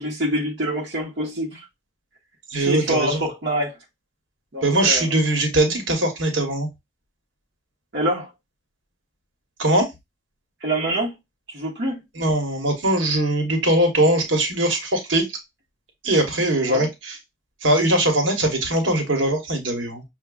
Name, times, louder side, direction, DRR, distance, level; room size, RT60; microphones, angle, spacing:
voice 1, 0.0-1.6 2.5-3.8 4.5-5.1 7.9-8.3 10.6-11.1 11.5-12.0 16.7-16.8, right 1 dB, 60° right, 0.9 m, -25 dB
voice 2, 2.5-3.2 4.6-6.7 9.6-9.9 12.2-15.2 16.0-17.2 17.6-20.0, right 1 dB, 85° right, 1.1 m, -21 dB
5.8 x 2.2 x 2.2 m
head